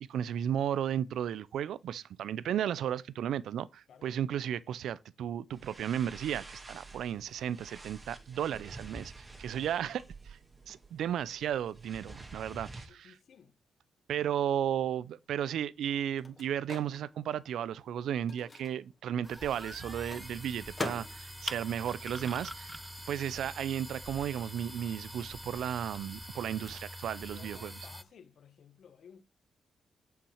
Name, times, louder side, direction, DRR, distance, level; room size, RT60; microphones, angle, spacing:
voice 1, 0.0-10.4 10.7-13.2 14.1-22.7 23.1-27.8, right 10 dB, 85° right, 0.4 m, -34 dB
sound 1, 5.5-12.9, right 3 dB, 25° right, 2.4 m, -49 dB
voice 2, 12.9-13.6 27.3-29.2, left 7 dB, 70° left, 1.3 m, -56 dB
Microwave oven, 14.8-23.0 23.2-25.1, left 3 dB, 30° left, 1.9 m, -46 dB
sound 2, 19.2-28.0, equal, ahead, 0.7 m, -44 dB
7.2 x 5.7 x 6.3 m
cardioid pair, 85°, 0 cm